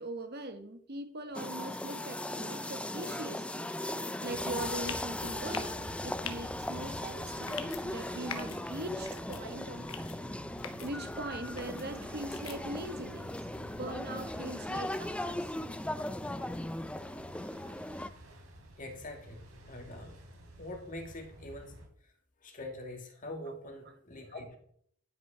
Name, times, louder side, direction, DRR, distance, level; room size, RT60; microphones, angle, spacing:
voice 1, 0.0-3.7 4.0-9.8 10.8-13.3 13.5-15.5 23.8-23.9, right 1 dB, 50° right, 7 dB, 1.4 m, -41 dB
sound 1, 1.3-18.1, left 1 dB, 5° left, 0.4 m, -38 dB
sound 2, 4.3-21.9, equal, 85° right, 3.0 m, -50 dB
sound 3, 4.9-5.1 5.5-5.8 6.2-6.4 7.4-7.8 8.3-8.6 9.1-9.4 9.9-10.2 10.6-10.9 11.6-11.8 12.3-12.6, left 8 dB, 75° left, 1.3 m, -42 dB
voice 2, 18.8-20.2 20.6-21.8 22.4-24.6, left 1 dB, 40° left, 3 dB, 2.1 m, -44 dB
11.0 x 6.2 x 5.6 m, 0.62 s
head